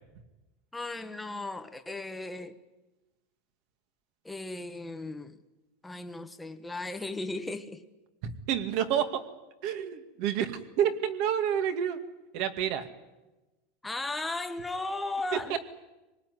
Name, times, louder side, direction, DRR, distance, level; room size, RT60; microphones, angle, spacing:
voice 1, 0.7-2.6 4.2-5.4 5.8-7.8 13.8-15.6, left 2 dB, 5° left, 1.1 m, -36 dB
voice 2, 8.5-9.2 9.6-12.0 12.3-12.9 15.5-15.6, right 9 dB, 50° right, 2.2 m, -29 dB
26.5 x 19.5 x 9.7 m
supercardioid pair, 165°, 0 cm